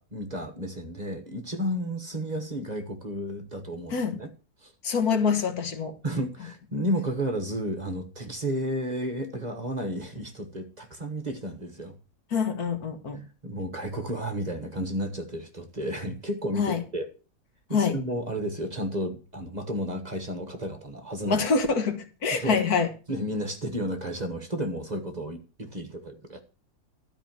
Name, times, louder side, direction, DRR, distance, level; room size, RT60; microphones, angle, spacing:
voice 1, 0.0-4.3 4.6-4.7 6.0-12.0 13.1-17.1 17.7-21.4 22.3-22.6 23.1-26.4, equal, 30° right, 7 dB, 1.2 m, -32 dB
voice 2, 4.8-5.9 12.3-13.2 16.6-16.8 17.7-17.9 21.3-22.9, left 5 dB, 75° left, 7 dB, 1.9 m, -25 dB
12.5 x 5.0 x 7.3 m, 0.35 s
omnidirectional pair, 1.6 m